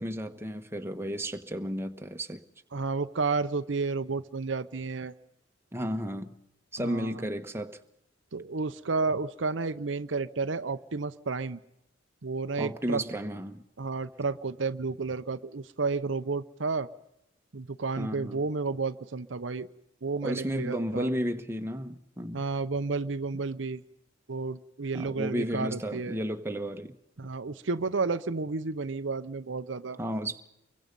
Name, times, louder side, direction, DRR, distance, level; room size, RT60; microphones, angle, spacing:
voice 1, 0.0-2.4 5.7-6.3 6.7-7.8 12.6-13.6 18.0-18.4 20.2-22.4 24.9-26.9 30.0-30.4, equal, 15° right, 1.3 m, -33 dB
voice 2, 2.7-5.1 6.8-7.3 8.3-11.6 12.2-13.0 13.8-16.9 17.5-19.7 20.0-21.1 22.3-23.8 24.3-26.2 27.2-30.0, right 4 dB, 70° right, 0.8 m, -31 dB
29.5 x 23.5 x 5.4 m
head